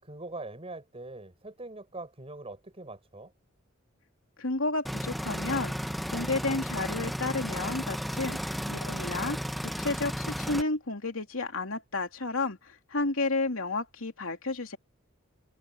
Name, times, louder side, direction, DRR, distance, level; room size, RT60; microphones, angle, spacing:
voice 1, 0.0-3.3, right 2 dB, 30° right, 6.1 m, -42 dB
voice 2, 4.4-5.7 6.1-8.4 8.7-9.4 9.8-14.8, left 3 dB, 75° left, 3.2 m, -31 dB
sound 1, 4.9-10.6, equal, ahead, 0.9 m, -34 dB
head